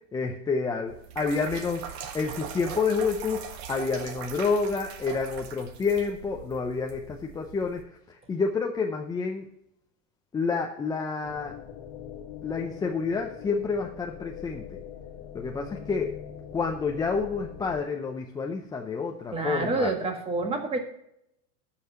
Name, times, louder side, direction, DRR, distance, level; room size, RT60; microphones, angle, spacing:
voice 1, 0.1-3.4 3.7-7.8 8.1-9.4 10.3-11.6 12.4-14.8 15.3-16.1 16.5-19.9, left 4 dB, 10° left, 2 dB, 0.5 m, -29 dB
sound 1, 0.9-7.8, right 7 dB, 55° right, 1.6 m, -41 dB
sound 2, 11.2-17.8, left 9 dB, 60° left, 1.6 m, -42 dB
voice 2, 19.3-20.8, right 3 dB, 15° right, 4 dB, 1.6 m, -28 dB
12.0 x 5.8 x 5.7 m, 0.76 s
supercardioid pair, 155°, 38 cm